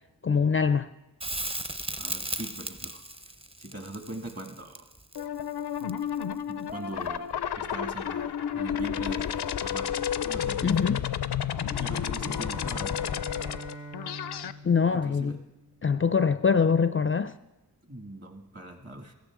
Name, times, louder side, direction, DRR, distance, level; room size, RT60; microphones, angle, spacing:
voice 1, 0.2-0.9 10.6-11.0 14.6-15.4 15.8-17.3, left 6 dB, 35° left, 0.4 m, -23 dB
Crackle, 1.2-6.3 9.1-9.2, right 1 dB, 15° right, 0.7 m, -36 dB
voice 2, 2.0-3.3 3.6-4.9 6.5-7.3 7.6-10.0 10.2-10.9 11.8-13.0 14.9-15.4 17.9-19.1, right 1 dB, 40° right, 2.1 m, -41 dB
sound 1, 5.2-14.5, left 9 dB, 90° left, 0.5 m, -31 dB
Bowed string instrument, 11.5-15.9, right 1 dB, 70° right, 5.9 m, -44 dB
16.0 x 14.5 x 3.7 m
wide cardioid pair, 40°, 38 cm